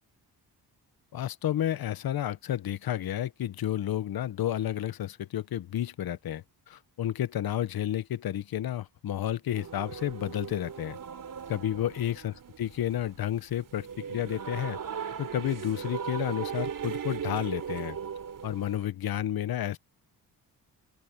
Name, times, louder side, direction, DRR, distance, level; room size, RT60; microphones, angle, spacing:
voice 1, 1.1-11.0 11.5-14.8 15.2-18.0 18.4-19.8, left 11 dB, 60° left, 1.0 m, -31 dB
sound 1, 9.5-18.9, right 7 dB, 50° right, 3.1 m, -38 dB
open air
cardioid pair, 90°, 41 cm